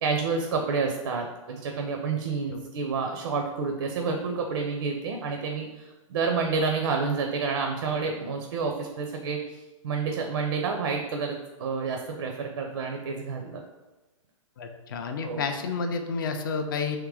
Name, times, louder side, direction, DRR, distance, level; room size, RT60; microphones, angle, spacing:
voice 1, 0.0-13.6 15.2-15.4, right 4 dB, 55° right, 3 dB, 0.6 m, -29 dB
voice 2, 14.6-17.0, left 5 dB, 40° left, 6 dB, 0.4 m, -30 dB
3.6 x 2.9 x 4.8 m, 1.1 s
hypercardioid pair, 160°, 17 cm